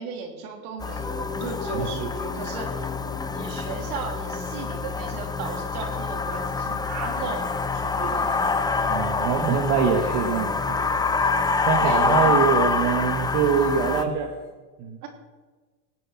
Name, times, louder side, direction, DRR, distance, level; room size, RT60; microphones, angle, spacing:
voice 1, 0.0-2.9 3.3-8.3 11.8-12.4 13.6-13.8 15.0-15.1, right 5 dB, 80° right, 3 dB, 3.3 m, -35 dB
sound 1, 0.8-14.0, left 4 dB, 10° left, 0.5 m, -26 dB
sound 2, 1.0-14.5, left 3 dB, 25° left, 4.7 m, -38 dB
voice 2, 1.7-2.1 8.8-10.8 11.7-14.3 14.8-15.0, right 7 dB, 60° right, 3 dB, 1.6 m, -24 dB
19.0 x 8.0 x 6.1 m, 1.3 s
supercardioid pair, 120°, 45 cm